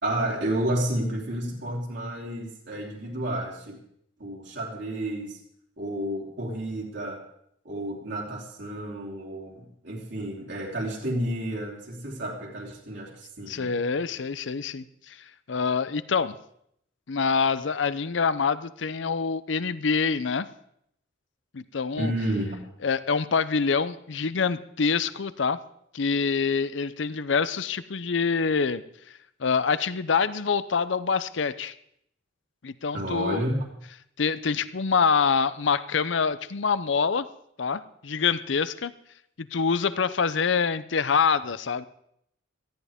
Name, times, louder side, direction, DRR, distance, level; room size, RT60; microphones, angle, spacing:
voice 1, 0.0-3.8 4.2-5.4 5.8-7.2 7.6-13.8 22.0-22.6 32.9-33.6, right 1 dB, 65° right, -4 dB, 3.3 m, -31 dB
voice 2, 13.5-15.2 15.5-16.4 17.1-20.5 21.5-22.1 22.8-25.6 25.9-28.8 29.4-31.7 32.6-33.4 34.2-37.3 37.6-38.9 39.4-41.9, left 5 dB, 70° left, 15 dB, 0.6 m, -25 dB
18.0 x 14.0 x 3.6 m, 0.71 s
head